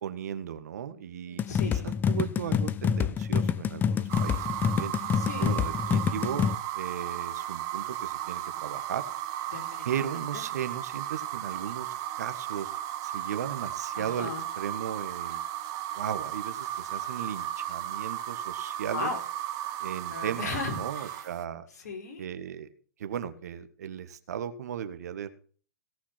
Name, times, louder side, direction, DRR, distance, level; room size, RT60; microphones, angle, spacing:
voice 1, 0.0-1.5 1.8-4.9 5.4-6.5 6.7-9.0 9.8-15.4 15.9-19.1 19.8-21.7 22.2-22.7 23.0-25.3, right 9 dB, 65° right, 11 dB, 1.6 m, -36 dB
voice 2, 1.3-1.9 5.1-5.5 9.5-10.0 10.3-10.4 13.9-14.4 18.9-19.2 20.1-21.3 21.8-22.2, left 4 dB, 65° left, 3 dB, 4.4 m, -37 dB
sound 1, 1.4-6.5, left 7 dB, 20° left, 0.6 m, -27 dB
sound 2, 4.1-21.4, right 12 dB, 40° right, 1.4 m, -35 dB
17.5 x 6.1 x 5.9 m, 0.42 s
hypercardioid pair, 120°, 9 cm